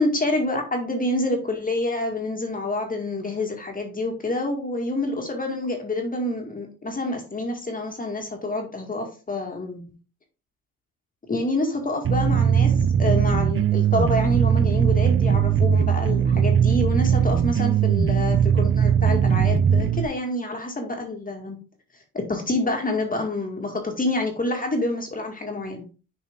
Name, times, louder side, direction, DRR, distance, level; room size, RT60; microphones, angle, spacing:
voice 1, 0.0-9.8 11.3-12.7 13.0-21.6 22.1-25.8, left 2 dB, 25° left, 2 dB, 2.0 m, -27 dB
sound 1, 12.0-20.0, right 8 dB, 40° right, 0.5 m, -20 dB
7.1 x 4.4 x 3.6 m, 0.33 s
cardioid pair, 100°, 34 cm